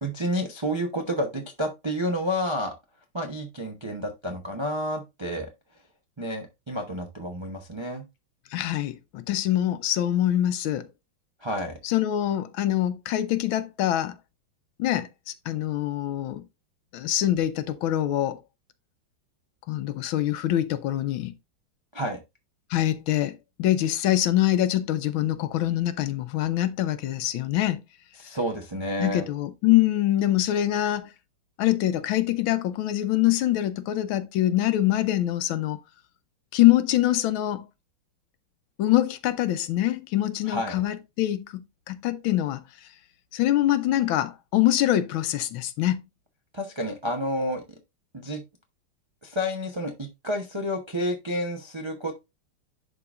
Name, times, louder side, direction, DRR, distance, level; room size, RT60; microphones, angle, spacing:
voice 1, 0.0-2.7 3.1-5.5 6.2-8.0 11.4-11.8 21.9-22.2 28.2-29.3 40.5-40.8 46.5-47.6 48.1-48.4 49.2-52.1, equal, 50° right, 0.3 m, -30 dB
voice 2, 8.5-10.9 11.8-14.2 14.8-16.4 16.9-18.4 19.7-21.3 22.7-27.8 29.0-31.1 31.6-35.8 36.5-37.7 38.8-41.5 41.9-42.6 43.3-46.0, left 13 dB, 80° left, 1.5 m, -24 dB
11.0 x 3.9 x 2.4 m
omnidirectional pair, 2.2 m